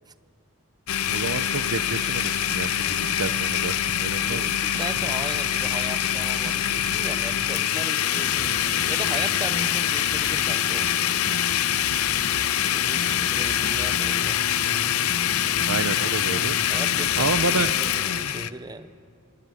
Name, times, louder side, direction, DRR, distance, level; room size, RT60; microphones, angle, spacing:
Domestic sounds home sounds, 0.9-18.5, left 11 dB, 80° left, 0.7 m, -24 dB
voice 1, 1.1-3.7 4.0-4.6 13.1-13.3 15.7-16.6 17.2-17.7, right 3 dB, 75° right, 13 dB, 0.9 m, -29 dB
sound 1, 2.2-3.5 3.9-4.5 4.7-5.2 5.6-9.6, right 3 dB, 40° right, 2.2 m, -43 dB
voice 2, 4.3-11.1 12.7-14.4 16.3-18.9, right 2 dB, 20° right, 12 dB, 0.8 m, -38 dB
sound 2, 8.3-17.7, left 1 dB, 60° left, 2.2 m, -37 dB
26.0 x 20.5 x 9.4 m, 2.4 s
head